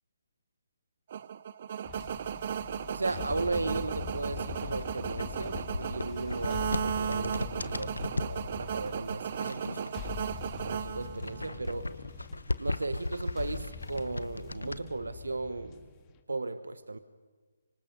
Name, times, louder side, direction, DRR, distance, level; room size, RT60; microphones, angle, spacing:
sound 1, 1.1-11.6, right 8 dB, 45° right, 0.7 m, -36 dB
sound 2, 1.8-16.2, left 7 dB, 20° left, 2.0 m, -43 dB
voice 1, 2.9-10.0 10.6-11.9 12.6-15.9 16.3-17.0, right 3 dB, 80° right, 12 dB, 1.2 m, -36 dB
sound 3, 4.5-8.4 9.1-10.4 10.7-14.8, left 2 dB, 90° left, 1.0 m, -37 dB
25.5 x 25.0 x 5.5 m, 1.4 s
figure-of-eight pair, 145°, 0 cm